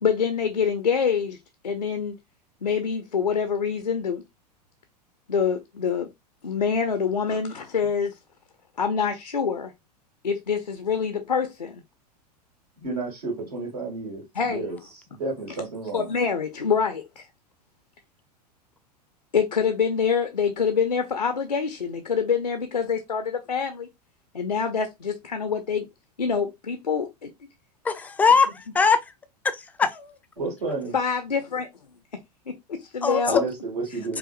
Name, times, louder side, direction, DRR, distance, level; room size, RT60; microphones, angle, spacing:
voice 1, 0.0-1.4 1.6-2.2 2.6-4.2 5.3-6.1 6.4-8.1 8.8-9.7 10.2-11.8 14.4-14.7 15.9-17.2 19.3-23.9 24.3-25.9 26.2-27.3 30.9-31.7 32.5-33.4, left 6 dB, 85° left, 0.5 m, -25 dB
voice 2, 12.8-14.8 15.1-16.1 30.4-31.0 33.2-34.2, right 3 dB, 65° right, 2.1 m, -31 dB
voice 3, 27.8-29.0 29.5-29.9 33.0-33.4 34.1-34.2, left 5 dB, 5° left, 0.3 m, -21 dB
4.9 x 2.5 x 2.4 m
figure-of-eight pair, 90°, 21 cm